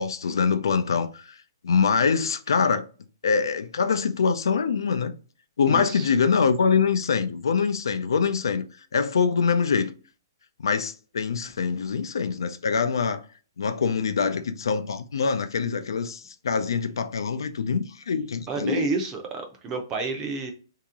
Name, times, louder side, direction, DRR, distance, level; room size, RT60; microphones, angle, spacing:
voice 1, 0.0-1.3 1.6-2.8 3.2-5.1 5.6-9.9 10.6-13.2 13.6-18.9, left 5 dB, 90° left, 0.5 m, -24 dB
voice 2, 5.7-6.1 18.5-20.5, right 4 dB, 15° right, 0.5 m, -30 dB
2.9 x 2.8 x 3.6 m
hypercardioid pair, 175°, 2 cm